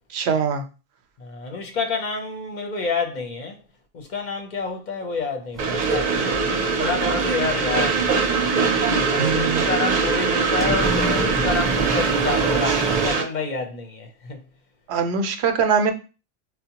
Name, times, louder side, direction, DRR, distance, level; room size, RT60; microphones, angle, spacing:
voice 1, 0.1-0.6 9.2-9.6 14.9-15.9, right 6 dB, 90° right, 0.8 m, -22 dB
voice 2, 1.2-3.6 3.9-8.1 8.8-14.4, left 4 dB, 55° left, 0.6 m, -28 dB
sound 1, 5.5-13.1, right 3 dB, ahead, 0.4 m, -30 dB
Train, 5.6-13.2, right 5 dB, 55° right, 0.7 m, -22 dB
4.3 x 2.0 x 2.8 m
omnidirectional pair, 1.0 m